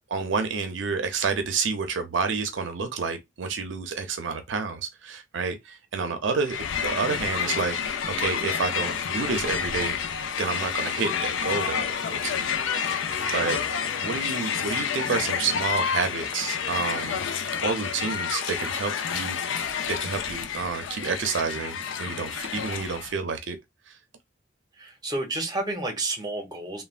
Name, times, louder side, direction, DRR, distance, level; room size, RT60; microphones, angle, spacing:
voice 1, 0.1-7.9 8.2-10.0 10.4-12.5 12.8-13.6 14.0-17.2 17.6-19.4 19.9-23.6 23.9-24.0, right 5 dB, 70° right, 0.5 m, -29 dB
Crowd, 6.5-23.2, left 7 dB, 75° left, 0.4 m, -29 dB
voice 2, 13.2-13.5 24.8-26.8, right 2 dB, 20° right, 0.8 m, -31 dB
3.2 x 2.2 x 2.4 m
head